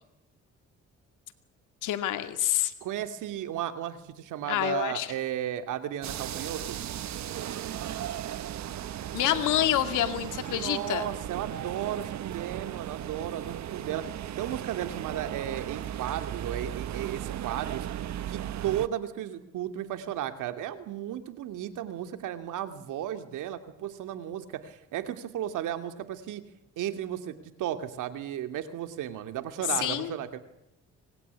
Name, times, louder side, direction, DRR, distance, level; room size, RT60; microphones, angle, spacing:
voice 1, 1.8-2.7 4.5-5.1 9.1-11.1 29.7-30.1, left 12 dB, 85° left, 9 dB, 2.3 m, -27 dB
voice 2, 2.8-6.8 10.5-17.9 18.3-26.4 26.8-30.4, right 11 dB, 85° right, 9 dB, 2.6 m, -34 dB
sound 1, 6.0-18.9, right 11 dB, 65° right, 1.2 m, -36 dB
25.5 x 20.0 x 9.7 m, 0.85 s
cardioid pair, 90°, 30 cm